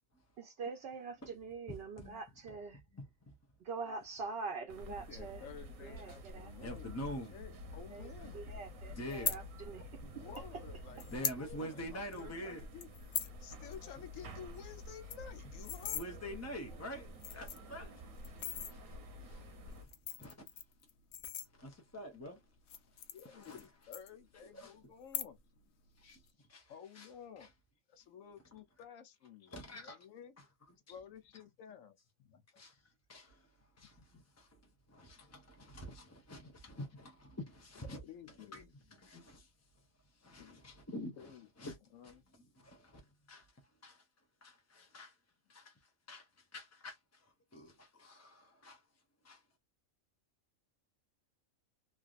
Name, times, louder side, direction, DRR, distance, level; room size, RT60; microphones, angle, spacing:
voice 1, 0.4-2.8 3.6-5.5 5.8-6.7 7.9-8.0 8.3-9.8, right 4 dB, 60° right, 0.8 m, -44 dB
voice 2, 1.7-2.2 2.9-3.3 6.6-7.3 8.2-8.3 8.9-9.4 10.0-10.1 11.1-12.6 15.9-19.9 20.2-20.3 21.6-22.4 23.2-23.7 24.4-24.8 26.0-26.2 26.5-27.1 27.4-27.5 29.5-30.0 30.4-30.9 32.6-32.7 33.1-33.5 33.8-34.6 34.9-38.0 38.3-39.5 40.2-41.8 42.0-43.0 43.3-43.5 43.8-44.0 44.4-45.2 45.5-45.7 46.1-48.8 49.2-49.4, equal, 25° left, 0.3 m, -47 dB
sound 1, 4.7-19.8, left 1 dB, 85° right, 1.2 m, -50 dB
voice 3, 4.9-7.0 7.3-8.4 9.7-9.8 10.1-12.9 13.4-16.1 23.1-25.4 26.7-27.5 27.9-30.3 30.9-31.9 32.3-32.4 33.8-33.9 37.9-38.7 40.4-40.6 41.2-41.5 41.9-42.2, left 8 dB, 85° left, 1.1 m, -52 dB
sound 2, 9.1-9.4 10.4-10.5 11.0-11.4 11.8-11.9 12.1-12.3 12.8-13.4 13.7-13.9 14.2-14.3 14.6-14.7 14.9-16.1 16.7-16.8 17.1-17.7 18.2-18.7 19.7-21.9 22.6-23.7 23.9-24.6 25.0-25.6 25.9-26.3, left 9 dB, 65° left, 0.8 m, -40 dB
3.2 x 2.5 x 2.4 m
omnidirectional pair, 1.4 m